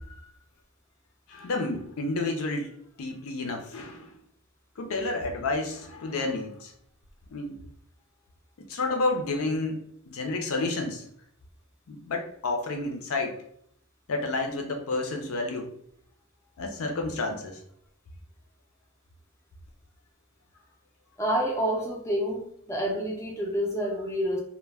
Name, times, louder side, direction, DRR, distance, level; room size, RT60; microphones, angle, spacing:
voice 1, 1.3-2.7 3.0-4.1 4.8-6.7 7.3-7.6 8.6-9.8 10.1-11.1 11.9-13.4 14.1-15.7 16.6-17.6, left 2 dB, 80° left, 3 dB, 0.5 m, -30 dB
voice 2, 21.2-24.4, equal, 15° left, -1 dB, 0.4 m, -28 dB
2.1 x 2.1 x 3.3 m, 0.67 s
head